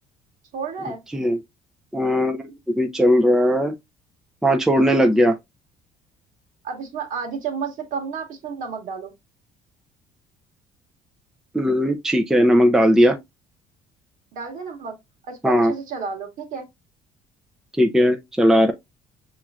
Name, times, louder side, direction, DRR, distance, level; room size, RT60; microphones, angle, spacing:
voice 1, 0.5-1.0 4.7-5.3 6.6-9.1 14.3-15.0 15.3-16.6, right 6 dB, 60° right, 1.5 m, -31 dB
voice 2, 1.9-3.7 4.4-5.4 11.5-13.2 15.4-15.7 17.8-18.7, equal, 5° right, 0.5 m, -18 dB
5.8 x 3.1 x 2.4 m
cardioid pair, 105°, 15 cm